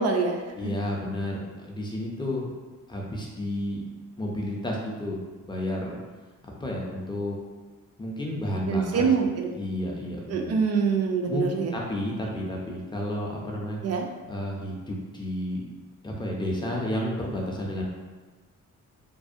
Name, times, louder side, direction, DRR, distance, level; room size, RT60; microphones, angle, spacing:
voice 1, 0.0-0.4 8.7-9.5 10.3-11.7 13.8-14.0, right 5 dB, 50° right, 2 dB, 0.4 m, -24 dB
voice 2, 0.6-2.5 2.9-3.9 4.2-5.2 5.5-6.0 6.4-7.4 8.0-9.0 9.5-10.5 11.3-13.8 14.3-15.7 16.0-17.8, left 1 dB, 15° left, -2 dB, 0.4 m, -31 dB
2.6 x 2.0 x 2.4 m, 1.3 s
cardioid pair, 105°, 33 cm